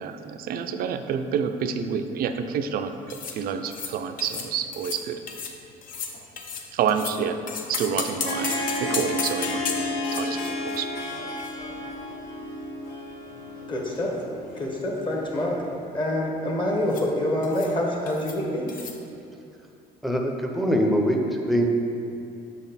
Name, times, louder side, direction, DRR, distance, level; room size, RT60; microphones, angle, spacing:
voice 1, 0.0-5.2 6.7-7.4 7.7-10.9, right 7 dB, 60° right, 8 dB, 0.4 m, -28 dB
sound 1, 3.1-3.4 3.7-3.9 4.2-4.5 4.7-5.0 5.3-5.6 5.8-7.2 7.5-12.2 12.4-12.5 13.3-14.2 14.5-14.7 15.0-15.4 16.9-17.1 17.4-17.8 18.1-18.4 18.7-19.0, left 5 dB, 55° left, 0.6 m, -35 dB
Harp, 8.0-15.7, left 1 dB, 75° left, 1.0 m, -33 dB
voice 2, 13.7-14.1 14.6-15.6 15.9-18.7, left 1 dB, 30° left, -2 dB, 1.1 m, -26 dB
voice 3, 20.0-21.2 21.5-21.7, equal, ahead, 1 dB, 0.6 m, -22 dB
6.1 x 4.2 x 4.0 m, 2.7 s
cardioid pair, 110°, 17 cm